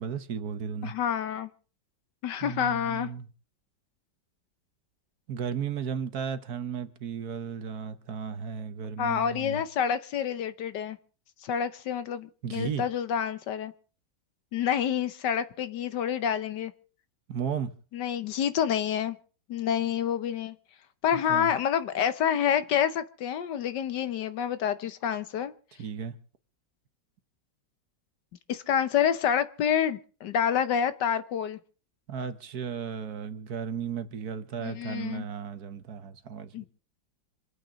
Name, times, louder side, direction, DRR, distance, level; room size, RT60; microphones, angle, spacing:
voice 1, 0.0-0.9 2.4-3.3 5.3-9.6 12.4-12.8 17.3-17.7 21.3-21.5 25.8-26.1 32.1-36.7, right 7 dB, 60° right, 1.4 m, -34 dB
voice 2, 0.8-1.5 2.2-3.1 9.0-11.0 11.4-13.7 14.5-16.7 17.9-19.2 19.5-20.5 21.0-25.5 28.5-31.6 34.6-35.2 36.5-36.7, left 8 dB, 70° left, 1.5 m, -28 dB
26.5 x 9.0 x 5.1 m
omnidirectional pair, 2.0 m